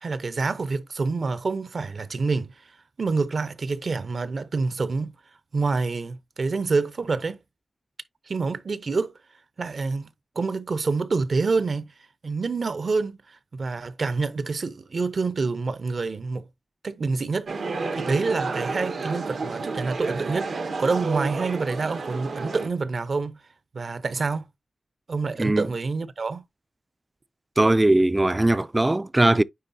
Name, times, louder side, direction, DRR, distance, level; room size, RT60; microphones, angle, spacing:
voice 1, 0.0-5.1 5.5-7.4 8.3-9.1 9.6-10.1 10.4-11.9 12.2-16.5 16.8-23.4 23.7-24.4 25.1-26.4, right 4 dB, 60° right, 0.7 m, -27 dB
sound 1, 17.5-22.7, right 3 dB, 85° right, 1.2 m, -31 dB
voice 2, 27.6-29.4, right 2 dB, 20° right, 0.4 m, -20 dB
9.5 x 3.7 x 2.7 m
wide cardioid pair, 85°, 0 cm